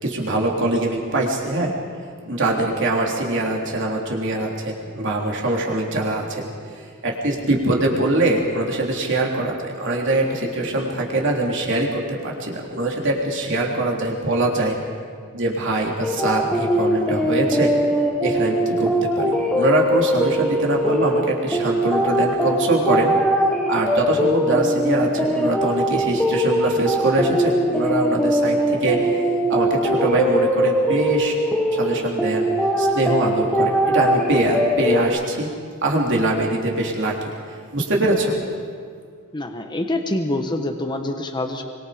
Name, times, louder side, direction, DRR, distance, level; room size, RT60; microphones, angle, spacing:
voice 1, 0.0-1.7 2.3-6.5 7.0-14.8 15.3-17.7 18.2-23.2 23.7-29.2 29.5-31.4 31.7-32.5 32.8-35.5 35.8-37.2 37.7-38.4, right 2 dB, 55° right, -1 dB, 3.5 m, -23 dB
sound 1, 16.0-35.1, equal, 5° left, 1.4 m, -21 dB
voice 2, 39.3-41.6, left 1 dB, 20° left, 4 dB, 1.2 m, -25 dB
24.5 x 23.0 x 5.2 m, 2.1 s
head